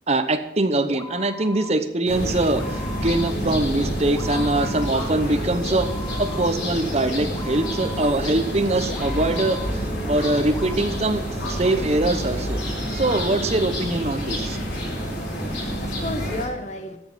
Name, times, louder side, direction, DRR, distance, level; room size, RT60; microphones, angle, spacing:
voice 1, 0.1-5.9 6.2-12.6 12.9-14.6, right 2 dB, 35° right, 8 dB, 0.9 m, -23 dB
sound 1, 0.6-10.8, left 2 dB, 20° left, 0.6 m, -39 dB
sound 2, 2.1-16.5, equal, 70° left, 4.8 m, -28 dB
voice 2, 14.7-17.0, left 2 dB, 40° left, 6 dB, 1.2 m, -34 dB
13.5 x 7.2 x 6.2 m, 0.88 s
head